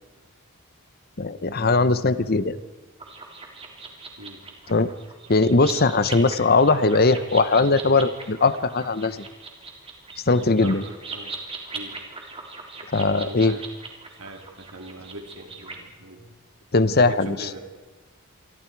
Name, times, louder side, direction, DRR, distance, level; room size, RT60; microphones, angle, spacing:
voice 1, 1.2-2.6 4.7-4.9 5.3-9.2 10.3-10.8 12.9-13.6 16.7-17.4, left 3 dB, 45° left, 14 dB, 0.9 m, -20 dB
sound 1, 3.0-15.8, right 4 dB, 25° right, 3.5 m, -39 dB
voice 2, 5.7-6.1 6.3-6.4 10.5-11.4 11.7-12.0 13.2-13.7 14.2-16.3 17.1-17.6, right 1 dB, 85° right, 3 dB, 3.8 m, -41 dB
28.0 x 24.0 x 4.7 m, 1.2 s
head